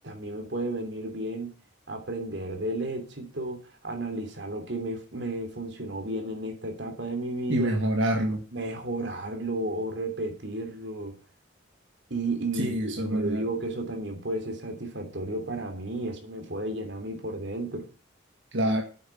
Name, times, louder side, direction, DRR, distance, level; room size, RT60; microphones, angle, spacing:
voice 1, 0.0-1.5 1.9-7.7 8.5-11.1 12.1-17.9, right 1 dB, 65° right, 5 dB, 3.1 m, -33 dB
voice 2, 7.5-8.4 12.6-13.4 18.5-18.8, right 1 dB, 85° right, 2 dB, 1.7 m, -26 dB
8.6 x 7.4 x 9.0 m, 0.37 s
head